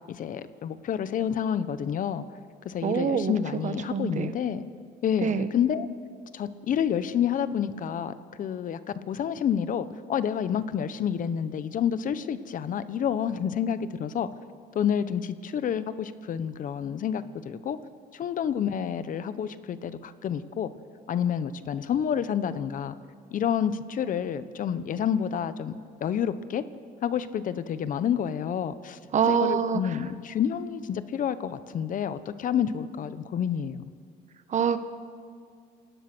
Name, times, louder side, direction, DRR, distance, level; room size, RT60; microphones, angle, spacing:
voice 1, 0.1-2.2 2.6-4.6 5.0-5.9 6.3-8.8 9.1-14.3 14.7-17.8 18.1-20.7 21.1-22.9 23.3-25.7 26.0-26.6 27.0-29.0 29.3-33.8, left 8 dB, 50° left, 13 dB, 1.0 m, -29 dB
voice 2, 2.8-3.3 3.6-4.3 5.2-5.5 29.1-30.0 34.5-34.8, right 7 dB, 45° right, 11 dB, 1.3 m, -25 dB
28.0 x 18.5 x 6.2 m, 2.2 s
cardioid pair, 110°, 17 cm